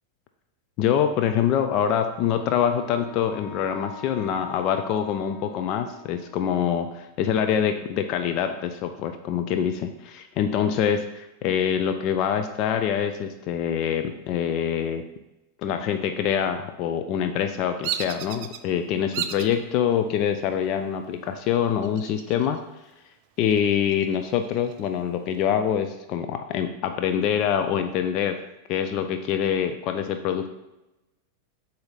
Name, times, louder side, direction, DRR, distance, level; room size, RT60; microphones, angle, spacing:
voice 1, 0.8-15.0 15.6-22.6 23.4-28.4 28.7-30.5, left 8 dB, 40° left, 7 dB, 0.4 m, -25 dB
Wind instrument woodwind instrument, 2.1-6.7, left 3 dB, 15° left, 1.5 m, -44 dB
Bird vocalization bird call bird song, 17.8-18.6 19.1-19.6 20.1-20.6 21.8-22.6 22.9-23.0 23.5-24.9, right 9 dB, 45° right, 0.4 m, -33 dB
7.8 x 2.8 x 5.1 m, 0.96 s
figure-of-eight pair, 90°, 0 cm